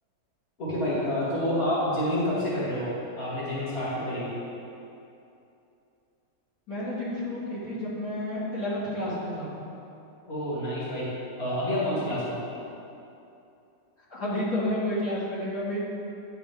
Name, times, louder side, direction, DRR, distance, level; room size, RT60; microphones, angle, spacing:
voice 1, 0.6-4.4 10.3-11.1 11.4-12.4, left 1 dB, 35° left, -9 dB, 2.4 m, -28 dB
voice 2, 6.7-9.5 14.1-15.8, left 1 dB, 55° left, -10 dB, 2.6 m, -30 dB
9.9 x 8.4 x 3.5 m, 2.8 s
omnidirectional pair, 1.9 m